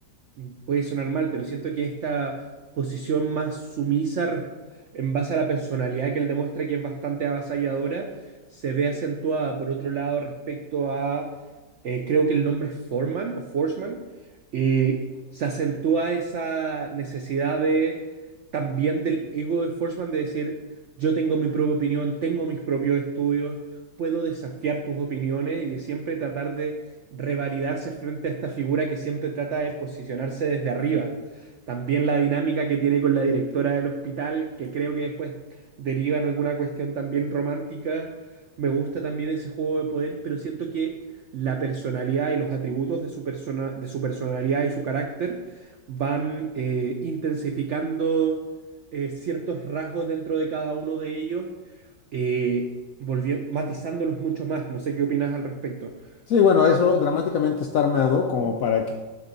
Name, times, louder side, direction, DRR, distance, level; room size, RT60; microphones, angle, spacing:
voice 1, 0.4-2.4 2.8-4.5 4.9-8.1 8.5-11.3 11.8-14.0 14.5-15.1 15.3-18.0 18.5-20.7 21.0-23.7 24.0-26.8 27.1-35.4 35.8-38.1 38.6-41.0 41.3-48.4 48.9-51.5 52.1-52.7 53.0-55.9, right 5 dB, 80° right, 4 dB, 0.6 m, -26 dB
voice 2, 56.3-58.9, left 6 dB, 75° left, 3 dB, 0.8 m, -20 dB
10.5 x 3.8 x 4.0 m, 1.2 s
omnidirectional pair, 1.9 m